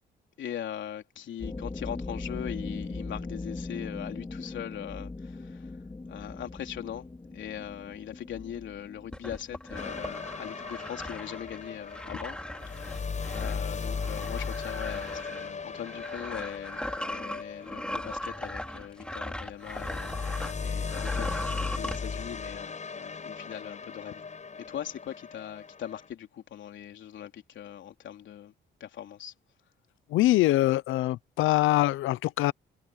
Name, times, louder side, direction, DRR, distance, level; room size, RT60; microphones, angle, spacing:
voice 1, 0.4-5.7 6.1-7.1 7.3-12.4 12.8-24.2 24.7-28.5 28.8-29.3, left 10 dB, 70° left, 3.7 m, -40 dB
sound 1, 1.4-11.7, left 3 dB, 20° left, 4.4 m, -40 dB
sound 2, 9.1-20.6 20.9-22.0, left 1 dB, 5° left, 3.9 m, -38 dB
sound 3, 9.8-19.2 19.6-26.1, left 5 dB, 35° left, 7.0 m, -37 dB
voice 2, 30.1-32.5, left 16 dB, 90° left, 0.7 m, -23 dB
cardioid pair, 90°, 20 cm